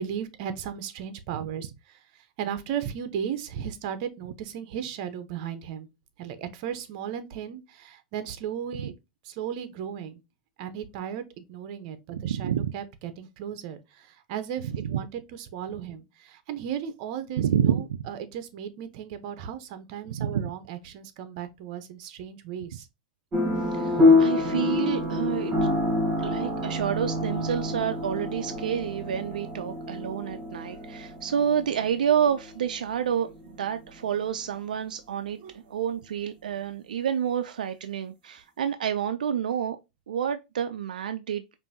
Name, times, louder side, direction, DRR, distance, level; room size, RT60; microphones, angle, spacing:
voice 1, 0.0-2.0 2.4-5.9 6.2-8.9 9.2-10.2 10.6-22.9 35.4-35.6, right 8 dB, 55° right, 0.8 m, -36 dB
voice 2, 12.1-12.7 14.7-15.0 17.4-18.0 20.1-20.5 23.7-25.5 26.2-35.4 35.7-39.8 40.1-41.6, right 8 dB, 90° right, 0.4 m, -29 dB
sound 1, 23.3-34.1, left 2 dB, 35° right, 2.8 m, -26 dB
5.3 x 2.6 x 2.6 m
hypercardioid pair, 120°, 4 cm